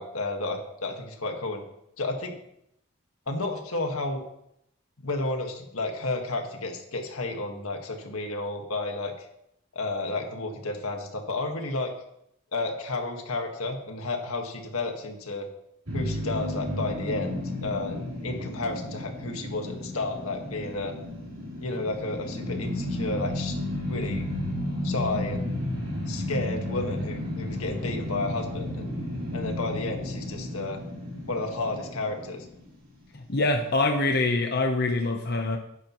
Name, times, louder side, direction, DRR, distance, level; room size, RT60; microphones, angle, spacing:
voice 1, 0.0-1.6 2.0-2.3 3.3-4.2 5.0-9.3 9.7-11.9 12.5-15.5 15.9-20.9 21.6-23.5 23.9-24.3 24.8-25.5 26.1-28.9 29.3-30.8 31.3-32.5, left 2 dB, 85° left, 3 dB, 1.7 m, -32 dB
sound 1, 15.9-33.0, left 1 dB, 70° right, 3.7 m, -33 dB
voice 2, 33.1-35.6, left 2 dB, 50° left, 3 dB, 0.9 m, -25 dB
13.0 x 10.0 x 3.1 m, 0.77 s
head